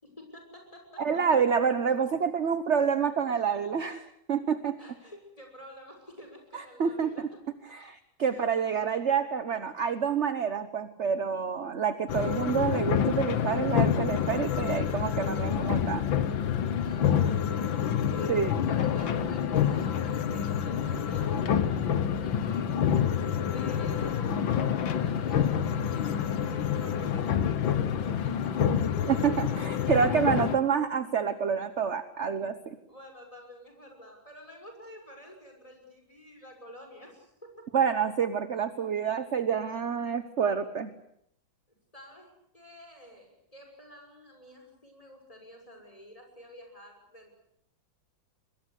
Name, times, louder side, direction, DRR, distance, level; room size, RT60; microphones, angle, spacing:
voice 1, 0.0-1.4 4.8-7.3 8.3-8.4 16.6-21.9 22.2-23.3 23.5-28.6 29.0-29.2 32.7-37.7 41.9-47.3, equal, 15° left, 3 dB, 6.4 m, -49 dB
voice 2, 1.0-4.7 6.8-7.3 7.7-16.1 18.3-18.5 29.1-32.8 37.7-40.9, right 6 dB, 40° right, 11 dB, 1.2 m, -28 dB
sound 1, 12.1-30.6, left 8 dB, 75° left, 1.9 m, -27 dB
23.5 x 21.5 x 8.3 m, 0.73 s
omnidirectional pair, 2.2 m